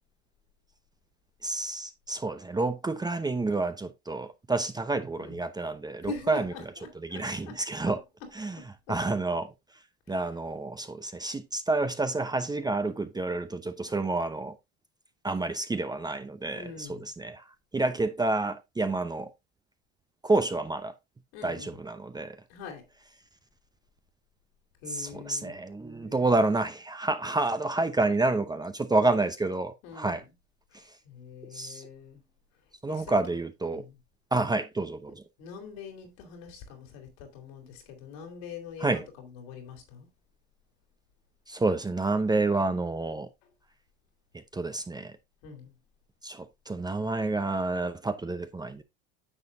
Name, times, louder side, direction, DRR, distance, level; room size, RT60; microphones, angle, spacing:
voice 1, 1.4-6.5 7.0-8.0 8.4-8.6 8.9-9.5 10.1-14.6 15.2-17.4 17.7-19.3 20.2-20.9 21.4-22.4 24.9-30.2 30.7-30.8 31.5-31.8 32.8-33.8 34.3-35.2 38.8-39.0 41.5-43.3 44.5-45.1 46.2-48.8, right 2 dB, 10° right, 0.7 m, -29 dB
voice 2, 6.0-8.3 8.6-9.0 10.1-10.2 16.5-17.1 21.3-21.8 22.5-22.8 24.8-26.4 29.8-30.3 30.7-32.2 32.9-33.1 33.7-34.0 35.4-40.1 45.4-45.8, left 5 dB, 70° left, 3.4 m, -44 dB
9.9 x 6.8 x 2.6 m
hypercardioid pair, 80°, 32 cm